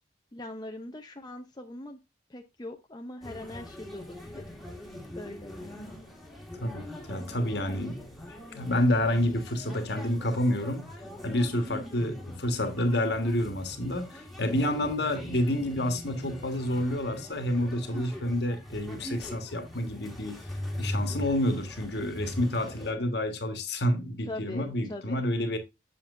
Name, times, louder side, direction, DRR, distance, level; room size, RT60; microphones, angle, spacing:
voice 1, 0.3-2.0 2.3-4.4 5.2-5.9 22.8-23.0 24.3-25.2, left 1 dB, 20° left, 0.7 m, -41 dB
sound 1, 3.2-22.9, left 1 dB, ahead, 1.8 m, -41 dB
voice 2, 6.6-8.1 8.5-10.9 11.2-20.4 20.8-25.6, left 1 dB, 60° left, 1.6 m, -29 dB
7.3 x 7.3 x 2.5 m
head